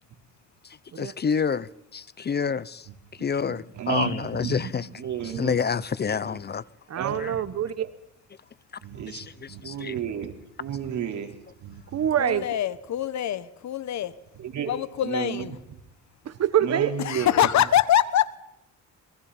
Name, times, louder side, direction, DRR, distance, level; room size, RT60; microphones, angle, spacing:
voice 1, 1.0-2.9 3.2-4.9 5.2-6.6 7.2-7.3 9.1-9.9, left 6 dB, 35° left, 0.7 m, -28 dB
voice 2, 3.2-5.6 7.0-7.4 7.8-7.9 8.8-11.3 11.6-12.1 14.3-14.7 15.0-15.6 16.6-17.5, right 8 dB, 70° right, 4.4 m, -33 dB
voice 3, 6.9-7.9 11.9-12.4 16.2-16.9, right 10 dB, 55° right, 1.2 m, -25 dB
voice 4, 12.2-14.1 14.7-15.5 17.0-18.4, left 11 dB, 65° left, 1.3 m, -24 dB
27.5 x 22.5 x 4.4 m
cardioid pair, 90°, 30 cm